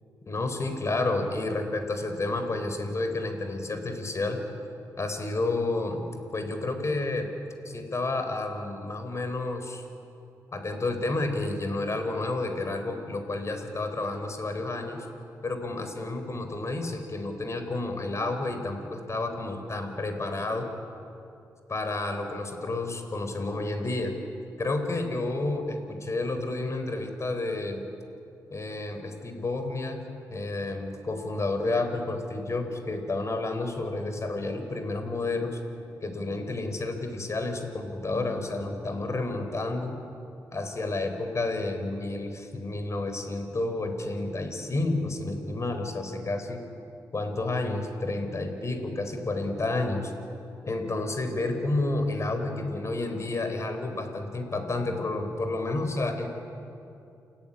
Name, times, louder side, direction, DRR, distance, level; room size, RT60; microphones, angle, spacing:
voice 1, 0.3-4.4 5.0-6.0 6.3-7.3 7.6-9.8 10.5-15.1 15.4-20.7 21.7-24.1 24.6-27.8 28.5-30.0 30.3-35.6 36.0-40.0 40.5-46.6 47.1-50.1 50.6-56.3, left 2 dB, 45° left, 6 dB, 4.1 m, -30 dB
29.0 x 14.5 x 9.8 m, 2.6 s
cardioid pair, 60°, 7 cm